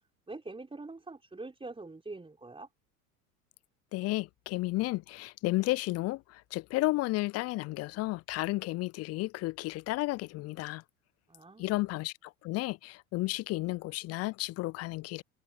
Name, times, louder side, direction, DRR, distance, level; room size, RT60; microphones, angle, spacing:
voice 1, 0.3-2.7 11.3-11.8, right 3 dB, 10° right, 4.7 m, -44 dB
voice 2, 3.9-10.8 11.6-15.2, left 20 dB, 35° left, 0.5 m, -32 dB
figure-of-eight pair, 70°, 44 cm